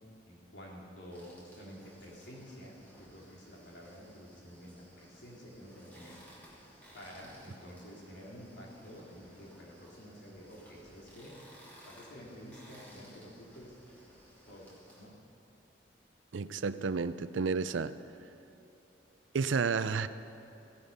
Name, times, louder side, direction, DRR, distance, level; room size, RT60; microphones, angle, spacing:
voice 1, 0.3-6.2 6.9-11.4 11.8-14.1 14.5-15.2, equal, 70° left, -3 dB, 2.9 m, -50 dB
sound 1, 1.1-15.0, equal, 10° left, 2.9 m, -57 dB
voice 2, 16.3-17.9 19.3-20.1, right 5 dB, 85° right, 13 dB, 0.5 m, -31 dB
15.5 x 11.0 x 5.3 m, 3.0 s
head